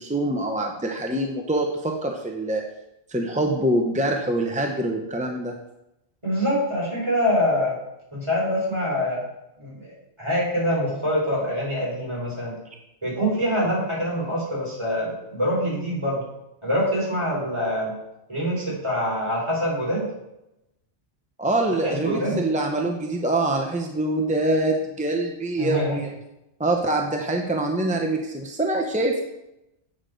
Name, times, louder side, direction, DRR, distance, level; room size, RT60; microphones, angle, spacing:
voice 1, 0.0-2.6 3.1-5.5 21.4-26.1 26.6-29.2, right 1 dB, 10° right, 1 dB, 0.4 m, -24 dB
voice 2, 6.2-7.7 8.1-9.2 9.6-12.6 13.0-16.2 16.6-17.9 18.3-20.1 21.8-22.4 25.6-26.0, equal, 25° right, -6 dB, 3.7 m, -25 dB
8.5 x 6.5 x 3.9 m, 0.90 s
omnidirectional pair, 1.1 m